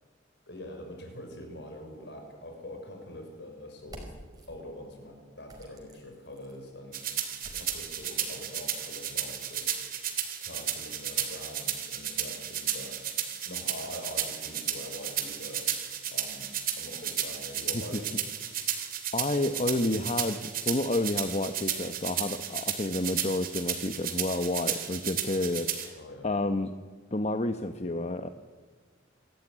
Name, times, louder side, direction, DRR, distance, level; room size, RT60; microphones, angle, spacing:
voice 1, 0.5-4.1 4.5-7.0 7.5-9.7 10.4-13.0 13.5-15.7 16.1-18.2 25.9-26.3, left 1 dB, 60° left, 3 dB, 6.0 m, -44 dB
sound 1, 3.8-4.5 5.5-6.6 7.4-9.7, right 1 dB, 20° right, 5.3 m, -50 dB
sound 2, 6.9-25.9, right 9 dB, 45° right, 3.3 m, -33 dB
voice 2, 19.1-26.0 26.2-26.7 27.1-28.3, left 2 dB, 35° left, 8 dB, 0.9 m, -30 dB
27.5 x 13.5 x 9.9 m, 1.5 s
head